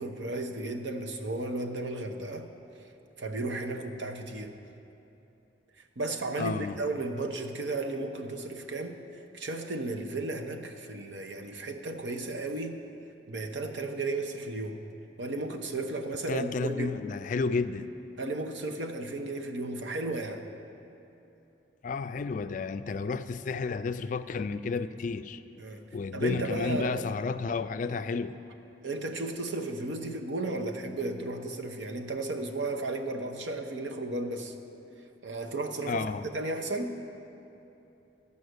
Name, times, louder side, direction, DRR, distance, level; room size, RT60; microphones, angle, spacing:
voice 1, 0.0-2.5 3.2-4.5 5.8-9.0 9.3-12.8 13.3-14.8 15.2-17.0 18.2-20.5 25.6-25.8 26.1-27.0 28.8-34.5 35.2-36.0 36.3-37.0, right 2 dB, 90° right, 5 dB, 0.9 m, -34 dB
voice 2, 6.4-6.7 16.3-17.9 21.8-25.4 25.9-28.4 35.9-36.2, left 4 dB, 45° left, 11 dB, 0.3 m, -31 dB
14.0 x 5.6 x 8.0 m, 3.0 s
head